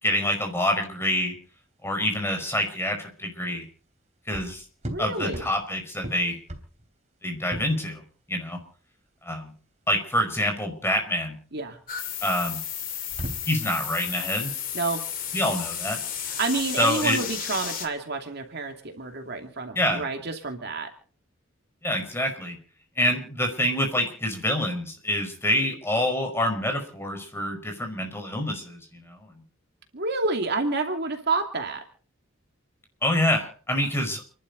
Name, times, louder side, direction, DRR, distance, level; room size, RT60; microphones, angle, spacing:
voice 1, 0.0-1.3 1.8-3.6 4.3-4.6 5.0-6.4 7.2-8.0 8.3-8.6 9.2-9.5 9.9-11.4 12.2-12.6 13.5-14.5 15.3-16.0 16.8-17.2 19.7-20.0 21.8-22.6 23.0-29.3 33.0-34.3, left 1 dB, 10° left, 4 dB, 5.1 m, -26 dB
sound 1, 1.4-19.6, right 1 dB, 35° right, 3.2 m, -42 dB
voice 2, 4.9-5.5 11.5-11.8 14.7-15.0 16.2-20.9 29.9-31.8, right 3 dB, 55° right, 4 dB, 2.6 m, -29 dB
sound 2, 11.9-17.9, left 9 dB, 45° left, 2.9 m, -33 dB
29.5 x 11.5 x 4.1 m, 0.43 s
head